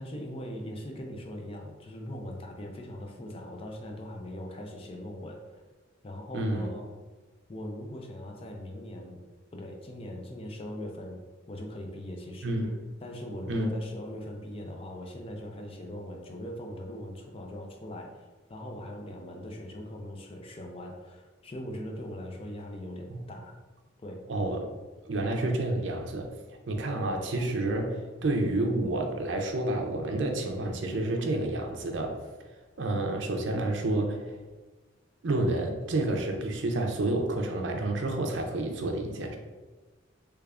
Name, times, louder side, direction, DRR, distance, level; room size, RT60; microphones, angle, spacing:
voice 1, 0.0-5.5 6.0-6.9 7.5-9.2 9.5-11.2 11.5-12.6 13.0-23.6 24.0-24.3, left 1 dB, 30° left, 1 dB, 0.5 m, -40 dB
voice 2, 6.3-6.7 12.4-12.7 13.5-13.7 23.1-23.2 24.3-24.7 25.1-26.3 26.7-32.2 32.8-34.2 35.2-39.4, right 2 dB, 70° right, 3 dB, 0.5 m, -29 dB
3.4 x 3.3 x 2.4 m, 1.3 s
head